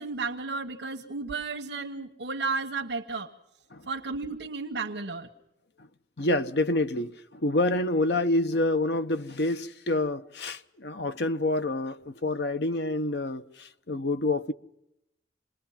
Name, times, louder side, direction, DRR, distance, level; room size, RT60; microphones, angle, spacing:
voice 1, 0.0-3.3 3.9-5.3, right 4 dB, 70° right, 1.3 m, -33 dB
voice 2, 6.2-14.5, left 2 dB, 65° left, 0.9 m, -27 dB
27.5 x 20.5 x 5.8 m
head